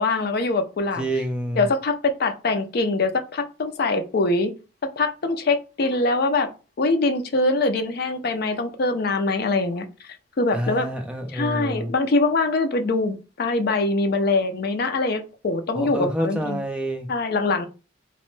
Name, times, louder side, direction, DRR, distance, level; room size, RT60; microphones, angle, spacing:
voice 1, 0.0-1.0 1.6-4.5 5.0-6.5 6.8-10.9 11.3-16.6 17.1-17.7, left 3 dB, 55° left, 0.4 m, -23 dB
voice 2, 1.0-1.7 10.5-11.9 15.8-17.1, right 1 dB, 5° right, 0.4 m, -28 dB
2.9 x 2.1 x 3.1 m
head